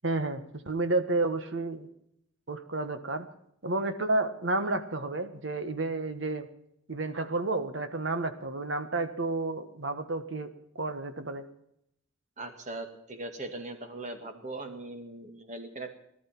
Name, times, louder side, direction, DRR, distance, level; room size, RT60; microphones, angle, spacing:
voice 1, 0.0-1.9 2.5-3.3 3.6-6.5 6.9-10.5 10.7-11.4, right 2 dB, 65° right, 9 dB, 1.4 m, -31 dB
voice 2, 12.4-15.9, right 2 dB, 35° right, 5 dB, 2.1 m, -40 dB
18.5 x 12.5 x 6.0 m, 0.75 s
head